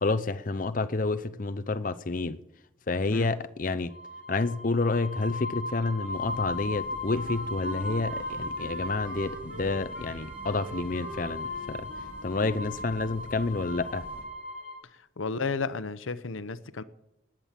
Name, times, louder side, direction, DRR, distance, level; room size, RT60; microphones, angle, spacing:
voice 1, 0.0-2.4 2.9-3.9 4.3-11.9 12.2-14.1, left 3 dB, 40° left, 0.6 m, -29 dB
sound 1, 3.9-14.8, left 2 dB, 35° right, 3.3 m, -37 dB
sound 2, 6.1-14.2, equal, 10° right, 4.4 m, -48 dB
Wind instrument woodwind instrument, 7.1-13.9, right 2 dB, 60° right, 2.8 m, -45 dB
voice 2, 15.2-16.8, left 4 dB, 80° left, 0.8 m, -32 dB
19.5 x 8.9 x 7.4 m
head